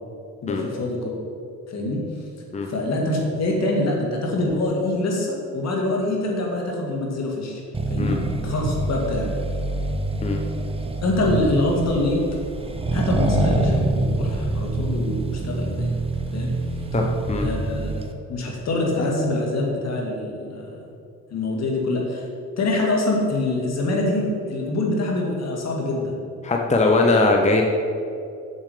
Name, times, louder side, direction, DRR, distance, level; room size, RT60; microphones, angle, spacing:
voice 1, 0.4-1.1 1.7-2.0 2.7-7.6 7.9-8.2 8.4-9.3 11.0-12.2 12.9-15.9 16.3-16.5 17.4-17.9 18.3-20.8 21.3-22.3 22.6-26.1, left 2 dB, 60° left, -1 dB, 2.1 m, -25 dB
Accelerating revving vroom, 7.7-18.1, right 2 dB, 20° right, 0.8 m, -25 dB
voice 2, 16.9-17.5 26.4-27.6, left 3 dB, 25° left, 1 dB, 0.8 m, -20 dB
7.4 x 7.2 x 5.0 m, 2.6 s
cardioid pair, 90°, 30 cm